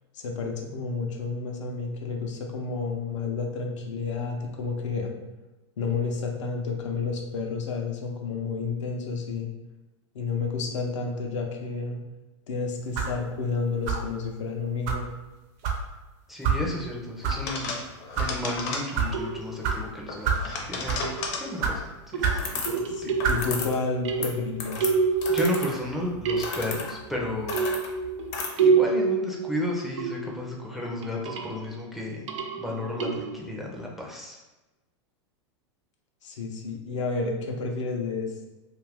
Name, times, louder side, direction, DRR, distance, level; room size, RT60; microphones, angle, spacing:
voice 1, 0.1-5.1 5.8-9.5 10.1-12.0 12.5-15.1 22.9-24.9 36.2-38.5, left 4 dB, 80° left, 1 dB, 0.6 m, -30 dB
sound 1, 12.9-13.2 13.9-14.1 14.9-15.0 15.6-15.8 16.4-16.6 17.2-17.4 18.0-18.3 18.9-19.1 19.6-19.8 20.2-20.5 20.8-21.1 21.6-21.8 22.2-22.4 23.2-23.4, right 6 dB, 45° right, 0.6 m, -26 dB
voice 2, 16.3-17.9 18.2-21.1 21.4-23.2 25.3-27.6 28.6-32.3 32.6-34.4, left 1 dB, ahead, -3 dB, 0.4 m, -33 dB
sound 2, 17.3-17.4 19.1-19.8 21.0-21.6 22.1-23.7 24.0-26.0 26.3-26.9 27.5-30.5 31.0-31.6 32.3-33.4, right 5 dB, 85° right, 0.4 m, -27 dB
sound 3, 17.5-19.3 20.1-21.5 22.3-22.9 23.2-23.8 24.0-28.5, left 4 dB, 45° left, 0.6 m, -34 dB
2.5 x 2.5 x 3.3 m, 1.1 s
hypercardioid pair, 125°, 15 cm